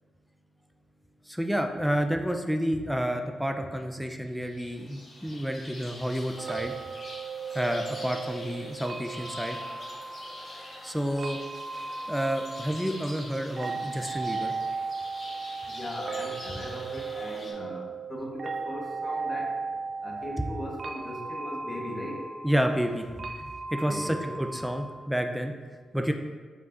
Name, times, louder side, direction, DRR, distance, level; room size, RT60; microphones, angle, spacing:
voice 1, 1.3-6.7 7.5-9.6 10.8-11.4 12.1-14.5 22.4-25.5 25.9-26.1, equal, ahead, 4 dB, 0.6 m, -30 dB
sound 1, 4.2-17.5, left 1 dB, 55° left, 1.9 m, -45 dB
sound 2, 6.4-25.1, right 4 dB, 55° right, 0.4 m, -37 dB
voice 2, 15.7-19.6 20.0-22.3 23.8-24.3, left 1 dB, 40° left, -1 dB, 1.4 m, -38 dB
8.4 x 4.6 x 2.6 m, 1.5 s
supercardioid pair, 50°, 0 cm